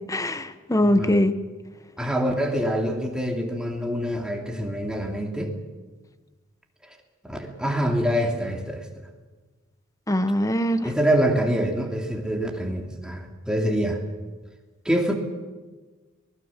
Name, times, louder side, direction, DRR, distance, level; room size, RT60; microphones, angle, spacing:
voice 1, 0.1-1.3 10.1-10.9, left 1 dB, 15° left, 11 dB, 1.1 m, -22 dB
voice 2, 0.8-1.1 2.0-5.5 7.2-8.9 10.8-14.0 14.8-15.1, equal, 5° right, 2 dB, 2.8 m, -25 dB
23.5 x 20.5 x 7.3 m, 1.3 s
head